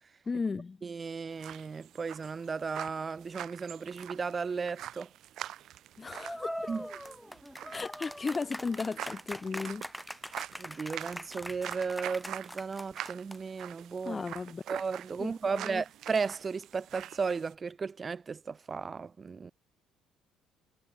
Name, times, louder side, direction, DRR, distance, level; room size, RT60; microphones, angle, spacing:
voice 1, 0.3-0.8 6.0-6.6 7.7-9.8 14.0-14.6 15.2-15.8, left 4 dB, 30° left, 0.8 m, -35 dB
voice 2, 0.8-5.1 6.7-6.9 10.6-14.2 14.7-19.5, right 5 dB, 35° right, 1.3 m, -35 dB
sound 1, 1.3-17.5, right 12 dB, 65° right, 1.0 m, -45 dB
sound 2, 6.2-13.6, equal, ahead, 3.0 m, -42 dB
hypercardioid pair, 55°, 0 cm